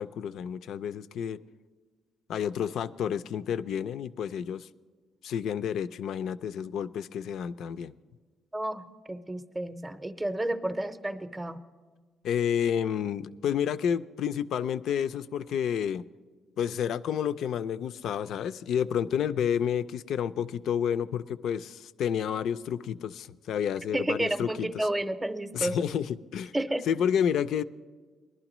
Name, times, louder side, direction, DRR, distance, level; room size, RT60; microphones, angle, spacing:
voice 1, 0.0-1.4 2.3-4.7 5.2-7.9 12.2-16.0 16.6-24.9 25.5-26.5 26.9-27.6, left 8 dB, 75° left, 14 dB, 0.3 m, -30 dB
voice 2, 8.5-11.6 23.9-25.8 26.5-26.9, right 1 dB, 15° right, 10 dB, 0.6 m, -31 dB
20.0 x 11.5 x 3.0 m, 1.4 s
cardioid pair, 90°, 0 cm